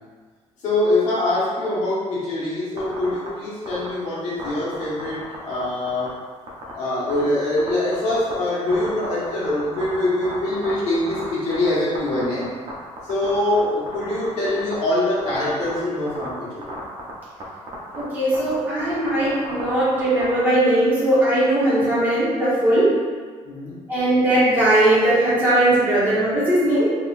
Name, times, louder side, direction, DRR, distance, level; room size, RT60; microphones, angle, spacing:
voice 1, 0.6-6.2 6.7-12.5 13.0-16.7 23.4-23.8, left 1 dB, 65° left, -9 dB, 1.4 m, -24 dB
sound 1, 2.8-3.3 3.7-3.9 4.4-5.6 5.9-6.1 6.5-6.7 7.1-7.2 7.6-8.3 8.7-11.7 11.9-12.7 13.0-13.6 13.9-14.7 15.2-15.8 16.1-16.3 16.6-17.1 17.4-17.5 17.7-18.0 18.3-20.3, right 3 dB, 45° right, 0.8 m, -34 dB
voice 2, 17.9-23.0 23.9-26.9, right 1 dB, 15° right, -12 dB, 1.4 m, -19 dB
3.7 x 3.1 x 2.6 m, 1.5 s
cardioid pair, 170°, 12 cm